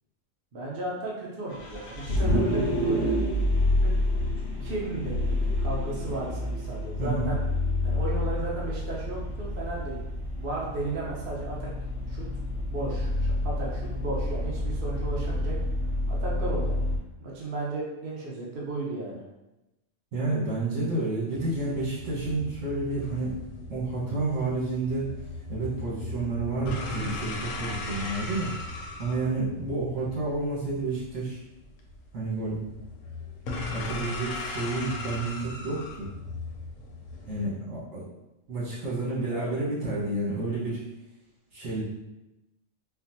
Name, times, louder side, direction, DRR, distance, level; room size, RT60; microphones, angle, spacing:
voice 1, 0.5-3.2 3.8-3.9 4.4-5.2 5.6-7.4 7.8-10.0 10.3-11.7 12.1-12.3 12.7-15.6 16.1-16.8 17.2-19.2 39.3-39.5, right 2 dB, 50° right, -5 dB, 0.8 m, -34 dB
Vehicle, 1.5-17.0, left 1 dB, 60° left, 0.8 m, -28 dB
voice 2, 7.0-7.3 20.1-23.3 23.7-25.0 25.5-28.5 29.0-31.4 32.1-32.6 33.7-36.1 37.3-38.0 38.5-40.8 41.5-41.8, right 2 dB, 75° right, -8 dB, 1.7 m, -30 dB
sound 1, 21.3-37.4, left 2 dB, 80° left, 1.0 m, -38 dB
4.3 x 2.0 x 2.7 m, 0.96 s
omnidirectional pair, 1.4 m